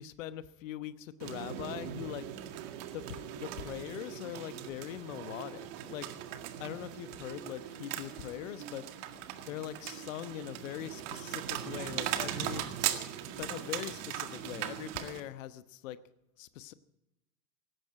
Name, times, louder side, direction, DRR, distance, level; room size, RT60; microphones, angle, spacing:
voice 1, 0.0-2.3 2.9-6.1 6.6-8.9 9.5-12.7 13.4-16.0 16.4-16.7, left 12 dB, 60° left, 14 dB, 1.1 m, -42 dB
sound 1, 1.2-15.2, right 11 dB, 55° right, 2.0 m, -39 dB
18.0 x 16.0 x 4.9 m, 0.93 s
figure-of-eight pair, 75°, 43 cm